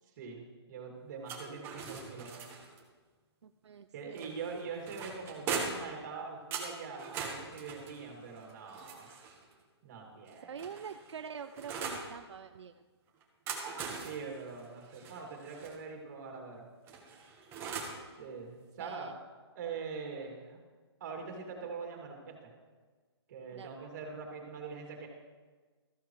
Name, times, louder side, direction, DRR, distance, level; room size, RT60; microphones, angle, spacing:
voice 1, 0.7-2.4 3.9-9.1 9.8-10.6 14.0-16.7 18.2-19.1 19.5-20.6 21.0-22.5 23.3-25.1, right 5 dB, 40° right, 1 dB, 2.6 m, -43 dB
sound 1, 1.2-2.8 4.2-5.9 6.5-9.4 10.2-12.1 13.2-15.7 16.9-18.0, right 5 dB, 15° right, 1.2 m, -41 dB
voice 2, 1.3-1.7 3.4-4.4 10.4-12.8 18.8-19.1 23.5-23.9, right 7 dB, 80° right, 9 dB, 0.5 m, -46 dB
14.0 x 12.5 x 3.2 m, 1.4 s
hypercardioid pair, 160°, 14 cm